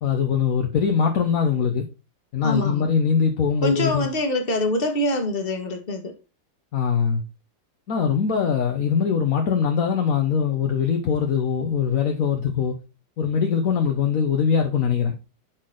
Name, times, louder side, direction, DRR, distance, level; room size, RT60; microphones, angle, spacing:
voice 1, 0.0-1.9 2.3-4.1 6.7-7.2 7.9-12.8 13.2-15.1, left 6 dB, 55° left, 1.2 m, -22 dB
voice 2, 2.4-2.9 3.6-6.1, left 1 dB, 30° left, 1.6 m, -24 dB
6.5 x 6.0 x 3.8 m
omnidirectional pair, 2.0 m